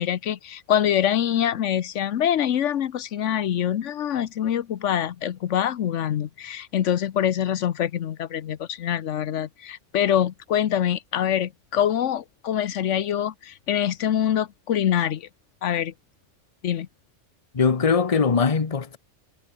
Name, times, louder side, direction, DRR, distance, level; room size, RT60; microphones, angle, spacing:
voice 1, 0.0-15.3 15.6-15.9 16.6-16.9, left 10 dB, 85° left, 1.1 m, -25 dB
voice 2, 17.5-19.0, left 5 dB, 30° left, 1.1 m, -21 dB
omnidirectional pair, 1.2 m